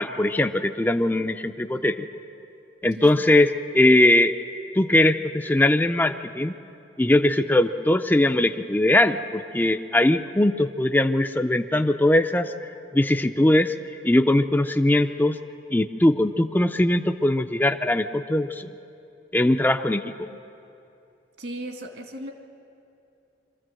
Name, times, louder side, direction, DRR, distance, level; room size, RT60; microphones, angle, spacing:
voice 1, 0.0-2.1 2.8-4.3 4.7-6.5 7.0-13.7 14.0-15.4 15.7-18.7 19.3-20.3, left 1 dB, 10° left, 7 dB, 0.5 m, -21 dB
voice 2, 3.0-3.3 21.4-22.3, right 1 dB, 70° right, 3 dB, 2.2 m, -37 dB
24.0 x 14.0 x 7.7 m, 2.7 s
head